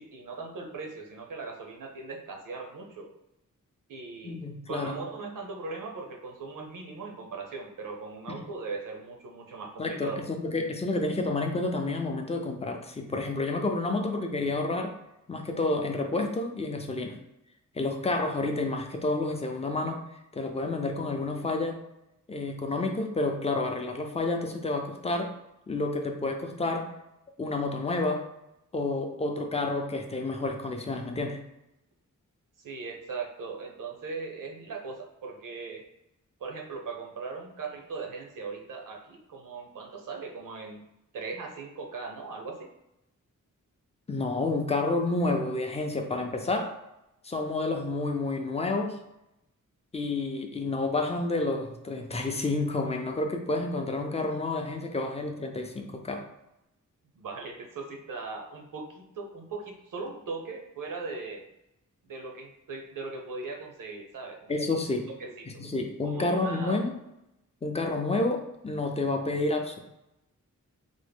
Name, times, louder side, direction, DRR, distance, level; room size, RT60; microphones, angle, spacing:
voice 1, 0.0-3.1 3.9-4.4 4.7-10.2 32.6-35.8 36.4-40.8 41.1-42.7 57.2-61.4 62.1-64.5 65.2-65.5 66.0-66.8, right 4 dB, 75° right, 2 dB, 0.7 m, -39 dB
voice 2, 4.2-4.9 8.3-8.4 9.8-14.9 15.3-17.2 17.8-20.1 20.3-21.8 22.3-25.3 25.7-27.0 27.4-28.3 28.7-31.4 44.1-46.8 47.2-49.0 49.9-56.3 64.5-65.1 65.6-66.9 67.6-69.8, left 2 dB, 20° left, 4 dB, 0.4 m, -29 dB
3.5 x 2.1 x 3.4 m, 0.87 s
wide cardioid pair, 130°, 32 cm